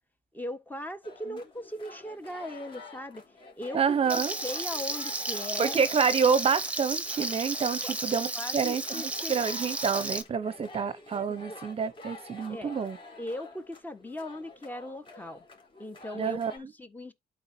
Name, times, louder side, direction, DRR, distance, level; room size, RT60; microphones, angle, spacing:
voice 1, 0.3-3.2 3.6-5.8 7.8-7.9 8.3-9.3 11.5-11.6 12.5-12.7 13.2-15.4 15.8-17.1, left 1 dB, 10° left, 1.5 m, -39 dB
sound 1, 1.0-16.6, left 2 dB, 30° left, 4.1 m, -48 dB
voice 2, 3.7-4.4 5.6-13.0 16.1-16.5, right 6 dB, 35° right, 0.9 m, -28 dB
Frying (food), 4.1-10.2, right 2 dB, 10° right, 1.4 m, -33 dB
12.5 x 4.8 x 2.8 m
cardioid pair, 110°, 17 cm